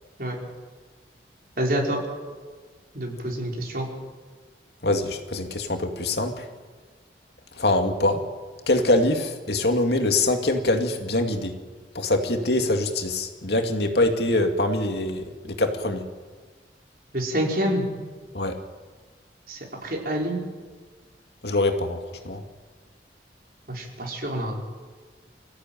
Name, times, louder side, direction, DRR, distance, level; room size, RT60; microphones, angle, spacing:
voice 1, 1.6-2.0 2.9-3.9 17.1-17.9 19.5-20.4 23.7-24.6, right 1 dB, 55° right, -1 dB, 5.5 m, -27 dB
voice 2, 4.8-6.4 7.6-8.2 8.7-11.6 11.9-16.0 18.3-18.6 21.4-22.0 22.2-22.4, left 2 dB, 65° left, 5 dB, 2.5 m, -24 dB
27.0 x 15.5 x 9.4 m, 1.4 s
head